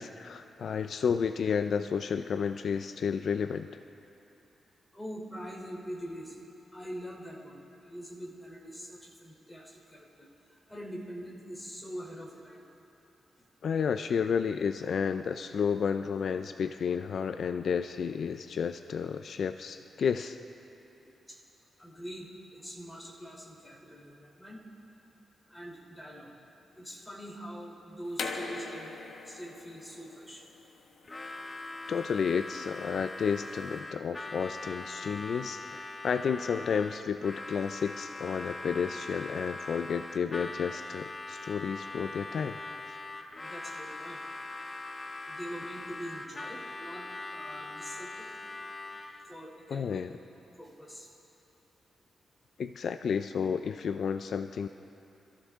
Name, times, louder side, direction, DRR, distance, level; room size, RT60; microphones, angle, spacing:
voice 1, 0.0-3.7 13.6-20.4 31.9-42.6 42.9-43.0 49.7-50.1 52.6-54.7, left 6 dB, 60° left, 9 dB, 0.4 m, -31 dB
voice 2, 4.9-6.3 6.7-10.3 10.7-12.6 21.3-21.4 21.8-24.6 25.5-26.4 26.8-28.9 29.2-30.4 43.4-44.2 45.2-47.1 47.3-48.3 49.2-50.0 50.6-51.1, equal, 5° left, -3 dB, 3.3 m, -43 dB
sound 1, 28.1-33.7, left 4 dB, 80° left, 1.2 m, -42 dB
Harmonica, 31.0-49.3, left 2 dB, 20° left, 0.7 m, -41 dB
26.5 x 15.0 x 3.6 m, 2.9 s
wide cardioid pair, 125°, 0 cm